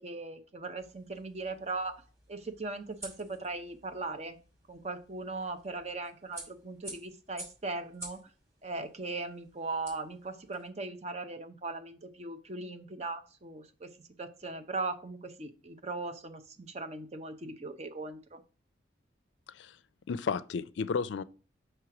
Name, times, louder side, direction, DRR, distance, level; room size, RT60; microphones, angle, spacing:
voice 1, 0.0-2.0 2.3-4.4 4.7-8.2 8.6-13.9 14.2-18.4, right 3 dB, 35° right, 0.7 m, -39 dB
sound 1, 0.8-10.7, right 1 dB, 15° right, 2.7 m, -51 dB
voice 2, 20.1-21.2, left 5 dB, 70° left, 0.4 m, -33 dB
6.2 x 3.3 x 5.9 m
head